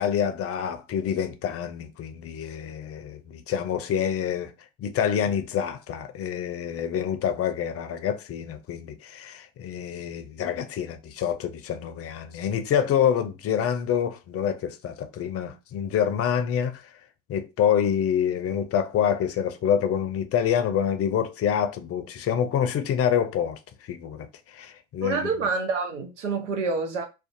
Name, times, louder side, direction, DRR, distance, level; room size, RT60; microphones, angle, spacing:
voice 1, 0.0-4.5 4.8-16.8 17.3-23.6 23.9-24.3 24.5-25.3, left 8 dB, 40° left, 0.5 m, -27 dB
voice 2, 25.0-27.1, right 4 dB, 90° right, 0.7 m, -27 dB
2.5 x 2.3 x 2.6 m
hypercardioid pair, 70°, 35 cm